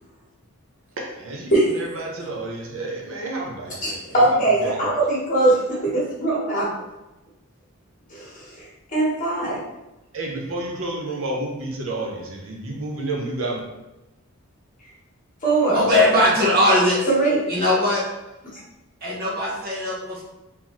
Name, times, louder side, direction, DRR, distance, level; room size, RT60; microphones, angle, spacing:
voice 1, 1.0-4.3 4.6-4.8 10.1-13.6, right 2 dB, 60° right, -1 dB, 0.7 m, -30 dB
voice 2, 3.8-6.7 8.1-8.7 8.9-9.6 15.4-15.8 17.1-17.5, right 2 dB, 35° left, -6 dB, 1.3 m, -21 dB
voice 3, 15.7-17.1 17.5-18.0 19.0-20.2, left 1 dB, 40° right, -5 dB, 1.1 m, -19 dB
3.9 x 2.8 x 3.0 m, 0.99 s
head